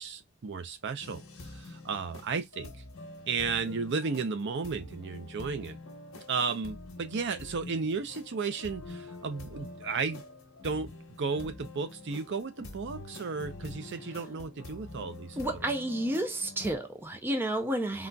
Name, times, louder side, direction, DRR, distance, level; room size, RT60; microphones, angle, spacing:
voice 1, 0.0-2.7 3.3-5.8 6.3-10.2 10.6-10.9 11.2-15.6, right 5 dB, 60° right, 0.5 m, -34 dB
sound 1, 1.0-16.8, left 2 dB, 70° left, 1.0 m, -46 dB
voice 2, 15.4-18.1, right 1 dB, 10° right, 0.4 m, -31 dB
3.8 x 2.4 x 2.2 m
head